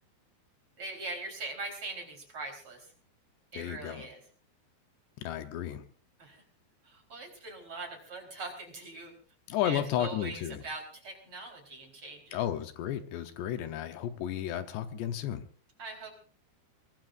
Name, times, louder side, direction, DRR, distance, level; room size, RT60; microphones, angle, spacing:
voice 1, 0.8-2.9 3.5-4.2 6.2-6.4 6.8-9.1 9.6-12.4 15.8-16.1, right 3 dB, 30° right, 2 dB, 4.6 m, -42 dB
voice 2, 3.6-4.1 5.2-5.8 9.5-10.6 12.3-15.5, left 11 dB, 80° left, 8 dB, 3.1 m, -33 dB
23.0 x 20.5 x 2.6 m, 0.41 s
omnidirectional pair, 5.1 m